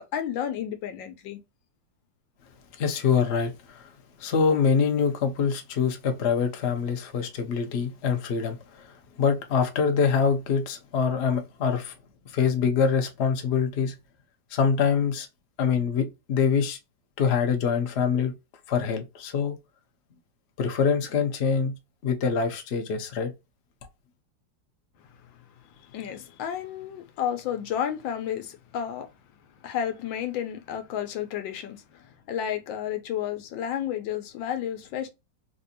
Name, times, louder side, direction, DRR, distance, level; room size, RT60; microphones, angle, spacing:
voice 1, 0.0-1.4 25.3-25.4 25.6-29.1 29.6-35.1, left 9 dB, 85° left, 1.4 m, -32 dB
voice 2, 2.8-3.9 4.2-11.9 12.3-13.9 14.5-15.3 15.6-16.8 17.2-18.3 18.7-19.6 20.6-21.8 22.0-23.3, left 6 dB, 65° left, 0.6 m, -25 dB
3.3 x 2.6 x 2.6 m
omnidirectional pair, 2.1 m